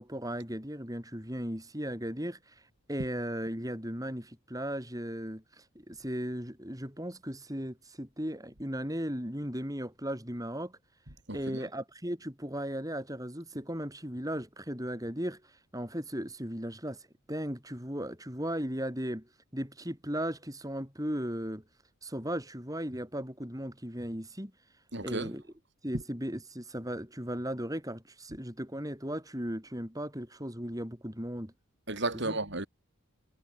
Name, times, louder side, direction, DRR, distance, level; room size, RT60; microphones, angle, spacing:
voice 1, 0.0-2.5 2.9-10.8 11.3-17.0 17.3-21.6 22.0-24.5 25.0-25.4 25.8-31.5 32.1-32.4, equal, 15° right, 7.4 m, -36 dB
voice 2, 24.9-25.3 31.9-32.7, right 2 dB, 55° right, 4.4 m, -33 dB
head